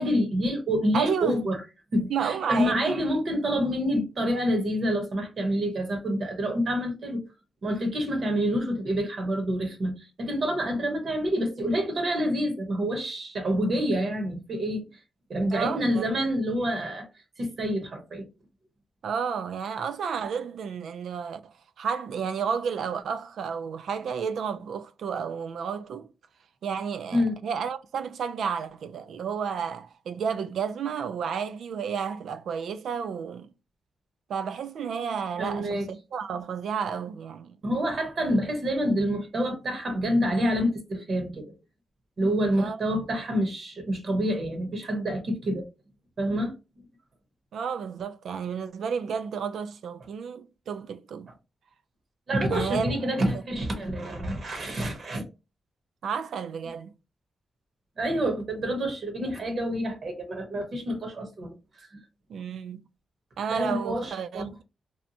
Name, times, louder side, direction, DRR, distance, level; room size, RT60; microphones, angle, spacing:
voice 1, 0.0-1.6 1.9-7.2 7.6-14.8 15.3-17.1 17.4-18.2 27.1-27.4 35.4-35.9 37.6-41.5 42.2-45.6 46.2-46.5 52.3-55.2 58.0-61.9 63.5-64.5, equal, 55° right, 0.8 m, -27 dB
voice 2, 0.9-1.4 2.1-3.0 15.5-16.1 19.0-26.1 26.6-33.5 34.3-37.6 42.5-42.8 47.5-51.3 52.5-53.0 56.0-56.9 62.3-62.9 63.4-64.6, right 6 dB, 80° right, 0.3 m, -31 dB
2.7 x 2.1 x 2.7 m
cardioid pair, 100°, 0 cm